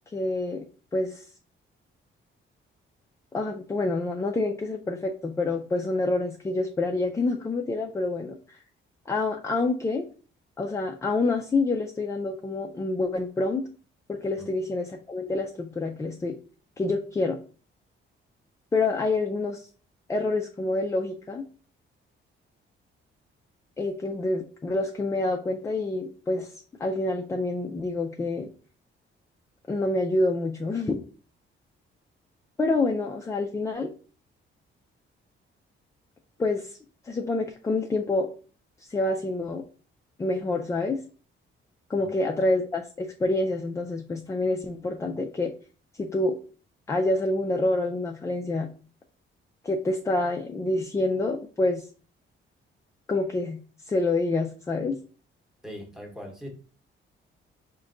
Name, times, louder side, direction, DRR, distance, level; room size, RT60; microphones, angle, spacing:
voice 1, 0.1-0.7 0.9-1.2 3.3-8.6 9.1-10.1 10.6-13.6 14.1-16.4 16.8-17.4 18.7-19.7 20.1-21.4 23.8-26.5 26.8-28.5 29.7-31.0 32.6-33.9 36.4-36.8 37.0-38.3 38.9-39.6 40.2-41.0 41.9-45.5 46.0-46.4 46.9-48.7 49.6-51.9 53.1-53.6 53.9-55.0, left 2 dB, 15° left, 0.3 m, -27 dB
voice 2, 55.6-56.5, equal, ahead, 0.9 m, -40 dB
4.9 x 2.2 x 3.7 m
cardioid pair, 155°, 21 cm